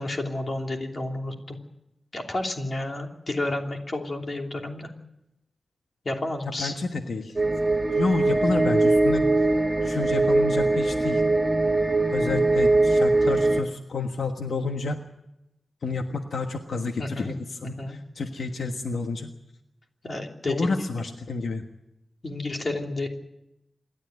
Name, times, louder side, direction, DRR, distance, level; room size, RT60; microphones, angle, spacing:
voice 1, 0.0-1.6 2.1-4.9 6.0-6.7 17.0-17.3 17.8-18.0 20.0-20.7 22.2-23.1, left 2 dB, 45° left, 2 dB, 3.0 m, -31 dB
voice 2, 6.6-7.3 7.9-9.3 9.8-11.2 12.1-15.0 15.8-19.3 20.5-21.6, left 3 dB, 80° left, 5 dB, 1.4 m, -29 dB
sound 1, 7.4-13.6, right 2 dB, 20° right, 2.0 m, -21 dB
27.5 x 12.0 x 9.3 m, 0.90 s
wide cardioid pair, 135°, 0 cm